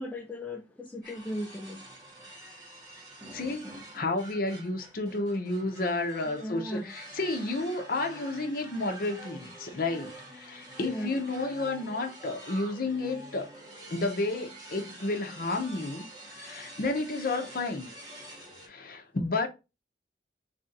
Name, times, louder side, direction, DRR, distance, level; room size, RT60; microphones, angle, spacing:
voice 1, 0.0-1.8 6.3-6.9 10.8-11.2, left 1 dB, 10° left, 0.4 m, -37 dB
sound 1, 1.0-18.7, right 1 dB, 25° right, 1.2 m, -47 dB
voice 2, 3.3-13.5 13.9-16.1 16.3-17.9 18.7-19.5, left 2 dB, 55° left, 0.7 m, -31 dB
3.3 x 2.6 x 3.9 m
head